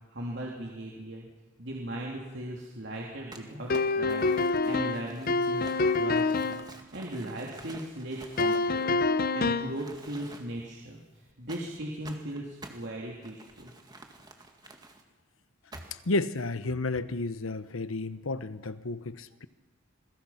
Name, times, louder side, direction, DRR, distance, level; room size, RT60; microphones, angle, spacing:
voice 1, 0.1-1.3 1.6-6.6 6.9-9.0 9.3-13.7, right 1 dB, 60° right, -2 dB, 3.2 m, -38 dB
Crumpling crinkling, 3.3-9.3 9.7-10.7 11.5-15.0 15.7-16.1, right 2 dB, 20° right, 1.9 m, -50 dB
sound 1, 3.7-6.7 8.4-9.8, left 3 dB, 45° left, 0.7 m, -26 dB
voice 2, 16.1-19.5, left 2 dB, 90° left, 13 dB, 1.1 m, -32 dB
27.0 x 22.0 x 5.9 m, 1.2 s
head